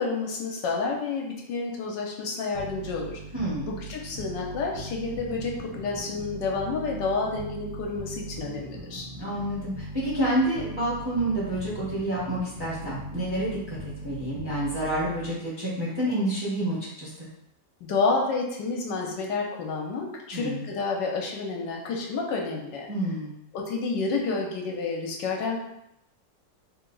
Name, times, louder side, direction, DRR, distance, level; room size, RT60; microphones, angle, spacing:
voice 1, 0.0-3.2 3.7-9.1 17.8-22.9 23.5-25.6, left 4 dB, 80° left, 0 dB, 1.3 m, -29 dB
sound 1, 2.5-15.5, right 2 dB, 70° right, 1.6 m, -40 dB
voice 2, 3.3-3.7 9.2-17.3 20.3-20.7 22.9-23.3, right 1 dB, 20° right, -8 dB, 0.9 m, -29 dB
3.4 x 2.8 x 3.8 m, 0.81 s
omnidirectional pair, 1.9 m